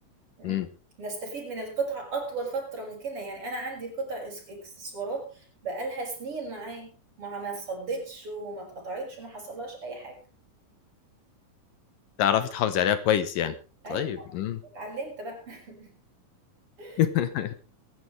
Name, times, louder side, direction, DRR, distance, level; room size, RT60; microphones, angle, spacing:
voice 1, 1.0-6.9 7.2-10.2 13.8-14.3 14.6-15.9 16.8-17.1, right 3 dB, 35° right, 0 dB, 6.7 m, -35 dB
voice 2, 12.2-13.6 13.9-14.6 17.0-17.5, left 10 dB, 75° left, 11 dB, 2.6 m, -25 dB
22.5 x 11.0 x 3.3 m, 0.33 s
omnidirectional pair, 4.1 m